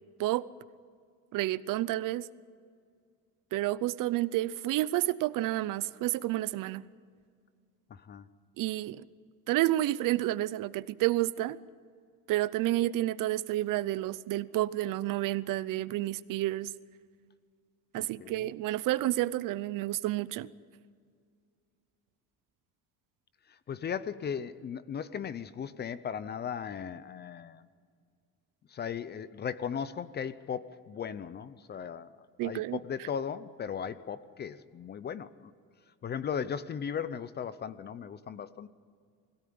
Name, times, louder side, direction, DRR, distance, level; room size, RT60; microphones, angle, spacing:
voice 1, 1.3-2.3 3.5-6.8 8.6-9.0 9.5-11.6 12.3-16.7 17.9-20.5 32.4-32.8, right 16 dB, 60° right, 0.7 m, -30 dB
voice 2, 7.9-8.3 17.9-18.5 23.5-27.7 28.7-35.5 36.0-38.7, left 7 dB, 30° left, 0.6 m, -37 dB
22.0 x 16.5 x 9.5 m
cardioid pair, 165°, 36 cm